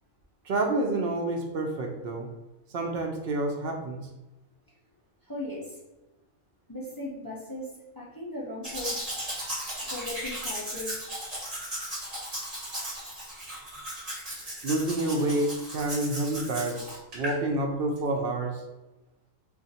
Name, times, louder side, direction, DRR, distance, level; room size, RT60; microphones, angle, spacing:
voice 1, 0.5-2.3 2.7-4.0 14.6-18.6, right 2 dB, 65° right, 3 dB, 0.6 m, -28 dB
voice 2, 5.2-5.8 6.7-9.1 9.8-11.1, left 1 dB, 30° left, -6 dB, 0.4 m, -38 dB
Domestic sounds home sounds, 8.6-17.4 18.0-18.1, right 1 dB, 30° right, 1.3 m, -36 dB
2.5 x 2.4 x 4.0 m, 1.0 s
omnidirectional pair, 1.4 m